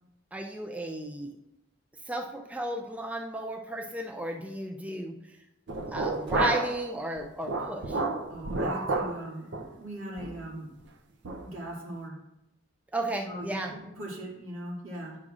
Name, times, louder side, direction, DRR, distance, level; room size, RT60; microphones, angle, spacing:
voice 1, 0.3-1.3 2.0-5.4 5.9-8.0 12.9-13.7, right 1 dB, 5° right, 3 dB, 0.4 m, -34 dB
sound 1, 5.7-6.8 7.2-9.2 9.5-9.7 10.2-10.4 10.8-10.9 11.2-11.4, right 2 dB, 55° right, 0.6 m, -30 dB
voice 2, 8.3-10.7 11.4-12.2 13.3-15.2, right 1 dB, 80° right, -3 dB, 2.2 m, -39 dB
9.5 x 6.2 x 2.4 m, 0.91 s
head